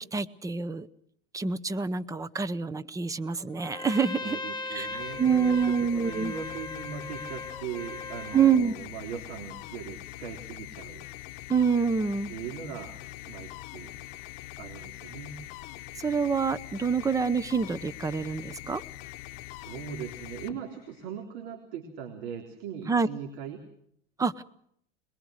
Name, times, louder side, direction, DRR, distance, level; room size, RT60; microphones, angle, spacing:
voice 1, 0.1-0.9 1.3-4.4 4.7-6.3 8.3-8.7 11.5-12.3 16.0-18.8 22.9-23.1 24.2-24.4, right 6 dB, 10° right, 15 dB, 0.8 m, -26 dB
Trumpet, 3.6-8.6, left 3 dB, 10° left, 1.9 m, -39 dB
voice 2, 4.2-11.0 12.3-13.0 13.2-13.9 14.6-15.4 19.5-23.6, right 7 dB, 70° right, 3 dB, 3.7 m, -40 dB
sound 1, 4.6-21.2, left 17 dB, 60° left, 1.1 m, -43 dB
22.0 x 22.0 x 6.5 m, 0.68 s
supercardioid pair, 125°, 34 cm